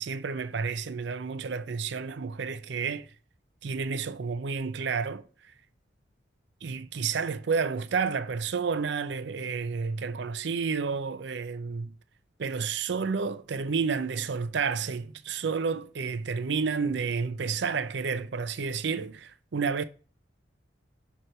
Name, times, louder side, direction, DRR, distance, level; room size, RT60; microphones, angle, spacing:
voice 1, 0.0-3.1 3.6-5.5 6.6-11.9 12.4-19.8, right 5 dB, 70° right, 0.5 m, -30 dB
6.5 x 3.1 x 5.4 m
head